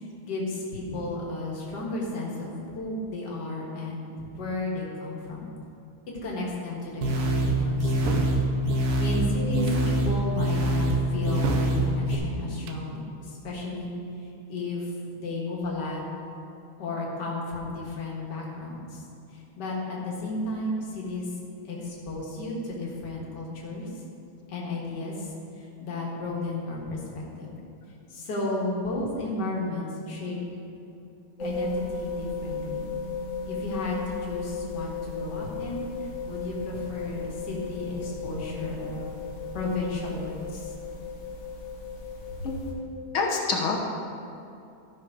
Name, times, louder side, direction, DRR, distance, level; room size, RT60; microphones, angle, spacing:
voice 1, 0.0-5.5 6.2-8.3 9.0-13.9 14.2-16.0 16.8-19.0 19.3-21.3 21.6-23.9 24.5-27.5 28.1-30.4 31.4-32.9 33.5-39.1 39.5-40.7, left 2 dB, 55° left, -3 dB, 2.2 m, -33 dB
sound 1, 7.0-12.1, right 1 dB, 60° right, 1.6 m, -25 dB
sound 2, 7.8-8.4 9.5-9.9 10.9-11.8 12.5-12.9, right 7 dB, 85° right, 1.6 m, -34 dB
sound 3, 31.4-42.7, left 4 dB, 40° left, 1.5 m, -35 dB
voice 2, 43.1-43.8, left 4 dB, 75° left, 0 dB, 2.0 m, -26 dB
13.5 x 5.8 x 5.0 m, 2.7 s
omnidirectional pair, 2.3 m